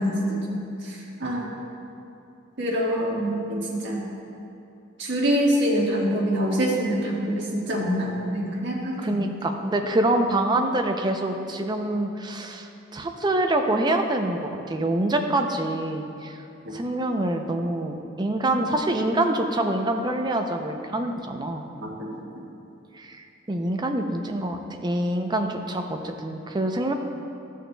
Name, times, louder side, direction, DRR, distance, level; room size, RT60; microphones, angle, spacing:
voice 1, 0.0-1.5 2.6-4.0 5.0-9.2 16.6-16.7 18.5-18.6 21.8-22.1, equal, 65° right, -4 dB, 1.6 m, -25 dB
voice 2, 9.0-16.4 16.7-21.7 22.9-26.9, right 1 dB, 20° right, 5 dB, 0.5 m, -26 dB
13.5 x 6.3 x 2.3 m, 2.7 s
head